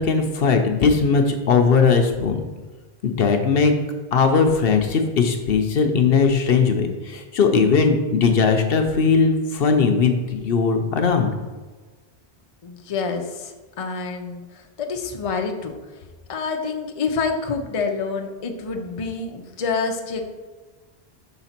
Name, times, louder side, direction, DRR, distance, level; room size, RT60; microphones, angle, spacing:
voice 1, 0.0-2.5 3.0-3.7 4.1-11.3, left 5 dB, 65° left, 5 dB, 0.9 m, -19 dB
voice 2, 12.6-14.4 14.8-15.7 16.3-20.2, left 4 dB, 40° left, 4 dB, 0.6 m, -27 dB
5.6 x 4.1 x 5.8 m, 1.3 s
omnidirectional pair, 1.1 m